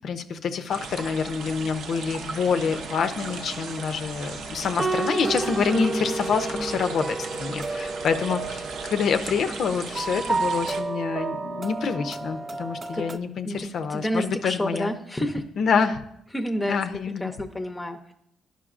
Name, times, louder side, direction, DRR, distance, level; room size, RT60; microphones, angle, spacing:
voice 1, 0.0-14.9 15.6-16.0 16.6-17.3, left 6 dB, 65° left, 8 dB, 0.5 m, -27 dB
sound 1, 0.7-10.8, right 4 dB, 70° right, 0.7 m, -37 dB
sound 2, 2.6-13.2, right 3 dB, 30° right, 0.3 m, -32 dB
voice 2, 13.4-15.4 16.3-18.1, equal, 15° left, 5 dB, 0.6 m, -30 dB
11.0 x 5.5 x 2.5 m, 0.74 s
cardioid pair, 90°, 0 cm